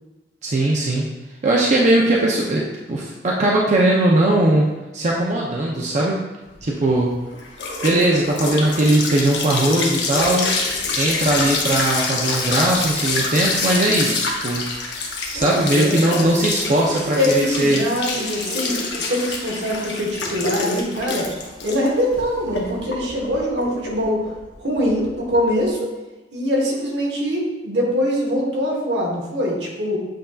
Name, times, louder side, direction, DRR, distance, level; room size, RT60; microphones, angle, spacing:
voice 1, 0.4-1.1 1.4-2.6 2.9-4.7 4.9-6.2 6.6-7.1 7.8-10.6 11.0-14.7 15.3-17.8, right 1 dB, 40° right, -3 dB, 0.5 m, -19 dB
sound 1, 6.6-25.6, left 3 dB, 85° left, 0.8 m, -26 dB
voice 2, 15.3-16.4 17.2-21.3 21.6-24.3 24.6-25.9 26.3-30.0, equal, 75° right, -2 dB, 1.1 m, -23 dB
7.6 x 2.6 x 2.3 m, 1.1 s
head